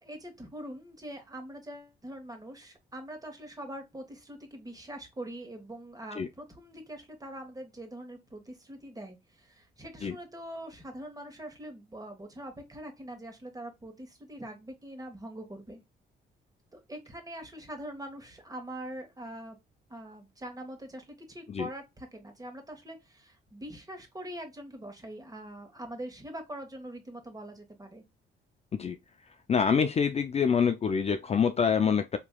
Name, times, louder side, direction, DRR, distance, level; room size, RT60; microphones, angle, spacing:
voice 1, 0.0-15.8 16.7-19.6 19.9-28.0, right 1 dB, 20° right, 1.5 m, -43 dB
voice 2, 29.5-32.2, left 6 dB, 30° left, 0.4 m, -26 dB
4.5 x 3.0 x 2.3 m
cardioid pair, 90°, 20 cm